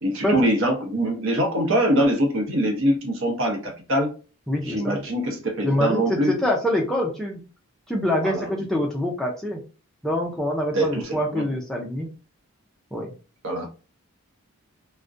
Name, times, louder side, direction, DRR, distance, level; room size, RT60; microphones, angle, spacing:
voice 1, 0.0-4.1 4.6-6.3 8.2-8.5 10.7-11.4 13.4-13.7, right 1 dB, 60° right, 0.7 m, -23 dB
voice 2, 4.5-5.0 5.6-7.4 7.9-9.6 10.0-12.1 12.9-13.1, left 1 dB, ahead, 0.3 m, -25 dB
2.4 x 2.1 x 2.4 m
head